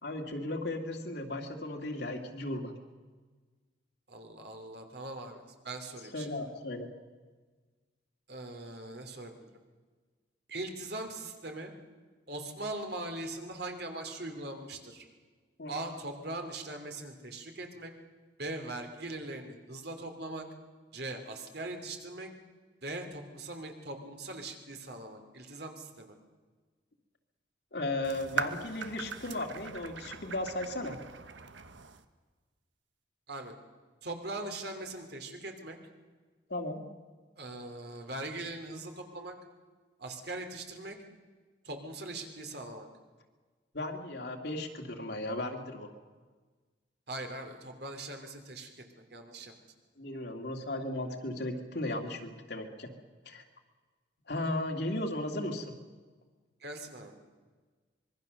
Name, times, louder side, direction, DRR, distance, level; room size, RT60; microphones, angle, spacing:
voice 1, 0.0-2.7 6.1-6.9 15.6-15.7 27.7-31.0 36.5-36.8 43.7-45.9 50.0-52.9 53.3-53.4 54.3-55.7, left 1 dB, 55° left, 3 dB, 2.3 m, -36 dB
voice 2, 4.1-6.3 8.3-9.5 10.5-11.7 12.3-15.0 15.7-17.9 18.4-20.5 20.9-22.3 22.8-26.1 33.3-33.5 34.0-35.8 37.4-39.3 40.0-41.0 41.6-42.9 47.1-48.8 49.1-49.5 56.6-57.2, right 2 dB, 55° right, 5 dB, 2.9 m, -41 dB
sound 1, 28.0-32.0, right 6 dB, 75° right, 1.2 m, -40 dB
25.0 x 22.0 x 6.7 m, 1.4 s
head